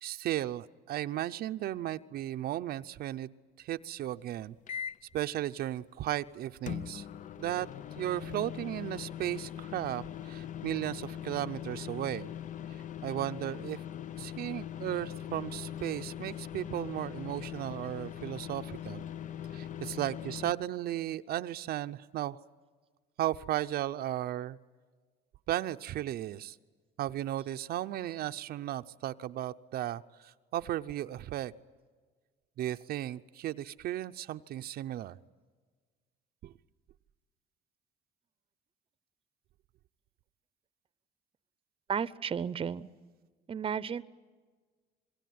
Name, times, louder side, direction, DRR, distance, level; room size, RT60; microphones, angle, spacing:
voice 1, 0.0-3.3 3.6-4.5 5.1-7.1 7.4-7.7 8.0-12.3 13.0-13.8 14.2-19.0 19.5-22.4 23.2-24.6 25.5-26.6 27.0-31.5 32.6-35.2 36.4-36.5, right 13 dB, 65° right, 9 dB, 0.7 m, -35 dB
sound 1, 4.7-5.1 6.7-20.5, left 10 dB, 50° left, 0.7 m, -41 dB
voice 2, 41.9-42.9 43.5-44.0, right 7 dB, 30° right, 18 dB, 0.8 m, -33 dB
26.5 x 21.5 x 9.4 m, 1.5 s
cardioid pair, 110°, 17 cm